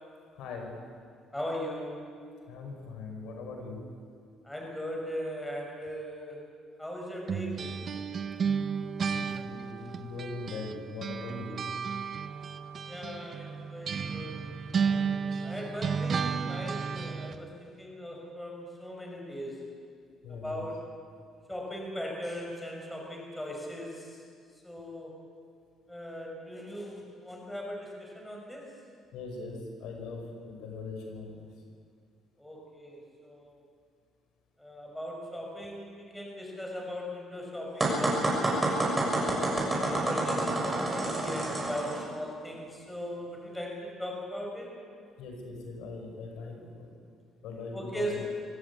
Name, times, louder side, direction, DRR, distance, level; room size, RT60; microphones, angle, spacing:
voice 1, 0.4-0.8 2.5-3.8 9.1-11.6 20.2-20.7 29.1-31.5 45.2-46.9 47.4-48.2, left 3 dB, 80° left, 2 dB, 5.5 m, -40 dB
voice 2, 1.3-2.0 4.4-6.4 6.8-7.8 12.9-14.5 15.0-19.6 20.3-20.8 21.5-24.2 24.6-25.2 25.9-28.7 32.4-33.6 34.6-38.8 39.4-44.9 47.7-48.2, equal, 5° left, -1 dB, 6.0 m, -39 dB
sound 1, 7.3-10.7 11.0-17.4, right 6 dB, 45° right, 1.0 m, -33 dB
sound 2, 37.8-42.0, right 2 dB, 15° right, 6.5 m, -28 dB
25.0 x 17.0 x 8.6 m, 2.2 s
cardioid pair, 125°, 0 cm